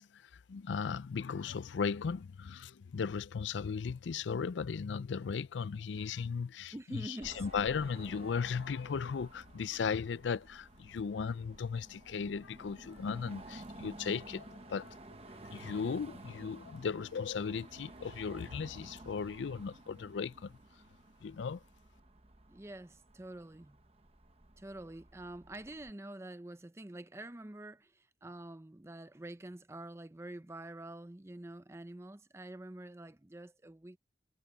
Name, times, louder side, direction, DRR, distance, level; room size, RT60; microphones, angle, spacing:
voice 1, 0.0-15.0 15.3-20.6 21.2-21.6, left 6 dB, 80° left, 0.4 m, -37 dB
voice 2, 6.7-7.5 22.5-23.8 24.6-34.0, right 1 dB, 15° right, 0.5 m, -47 dB
Car passing by / Traffic noise roadway noise / Engine, 7.2-25.9, right 2 dB, 30° right, 1.1 m, -53 dB
head